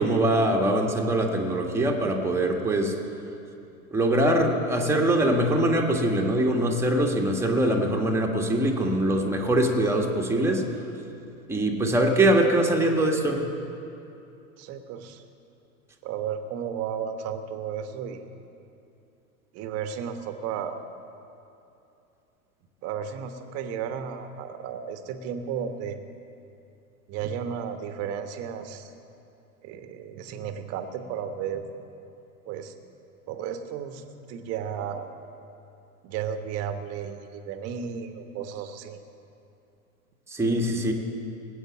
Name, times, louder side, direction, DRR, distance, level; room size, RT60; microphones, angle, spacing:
voice 1, 0.0-2.9 3.9-10.6 11.5-13.4 40.3-40.9, right 1 dB, 5° right, 1 dB, 1.5 m, -23 dB
voice 2, 14.6-15.2 16.0-18.2 19.5-20.8 22.8-26.0 27.1-28.9 29.6-31.7 32.4-32.7 33.3-35.1 36.0-39.0, right 8 dB, 35° right, 8 dB, 1.2 m, -33 dB
18.5 x 8.4 x 7.2 m, 2.7 s
figure-of-eight pair, 95°, 44 cm